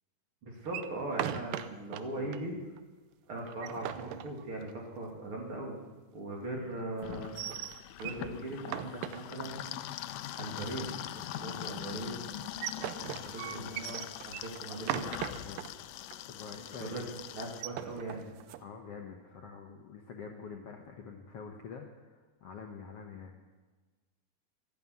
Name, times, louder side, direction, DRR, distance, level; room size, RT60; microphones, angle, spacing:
voice 1, 0.4-2.5 3.3-5.8 6.1-7.3 7.7-9.6 10.4-12.2 13.3-15.0 16.8-17.1 17.3-18.3, right 2 dB, 40° right, -1 dB, 3.1 m, -39 dB
sound 1, 0.7-2.0 2.3-2.4 2.8-2.9 3.4-4.9 7.1-8.3 8.6-9.7 12.3-15.7 16.1-16.2 16.5-16.8 17.4-18.6, right 12 dB, 75° right, 2.2 m, -39 dB
sound 2, 7.0-17.6, left 12 dB, 90° left, 1.8 m, -42 dB
voice 2, 13.1-13.8 15.4-15.7 16.3-17.2 18.6-23.4, left 5 dB, 70° left, 2 dB, 1.5 m, -46 dB
13.0 x 11.0 x 9.5 m, 1.3 s
omnidirectional pair, 4.3 m